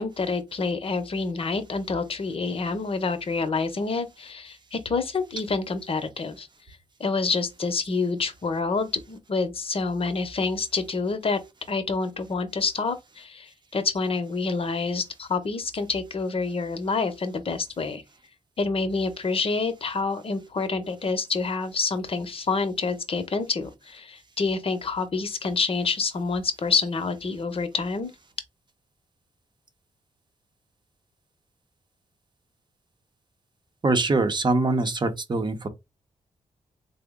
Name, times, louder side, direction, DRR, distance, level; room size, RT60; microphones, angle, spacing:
voice 1, 0.0-6.5 7.0-11.4 11.7-18.0 18.6-28.1, left 4 dB, 45° left, 0.8 m, -27 dB
voice 2, 33.8-35.7, right 3 dB, 35° right, 0.7 m, -23 dB
3.7 x 2.0 x 3.6 m
cardioid pair, 95°, 13 cm